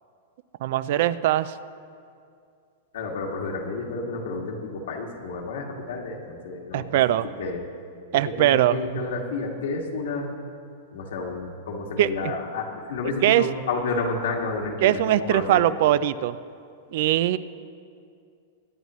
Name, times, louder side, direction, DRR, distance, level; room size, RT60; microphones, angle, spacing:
voice 1, 0.6-1.5 6.7-7.3 8.1-8.8 12.0-12.3 13.2-13.5 14.8-16.4 16.9-17.4, right 13 dB, 60° right, 16 dB, 0.4 m, -21 dB
voice 2, 2.9-6.9 7.4-7.6 8.3-10.3 10.9-15.6, left 3 dB, 80° left, 0 dB, 2.0 m, -30 dB
22.5 x 9.3 x 3.1 m, 2.4 s
hypercardioid pair, 140°, 0 cm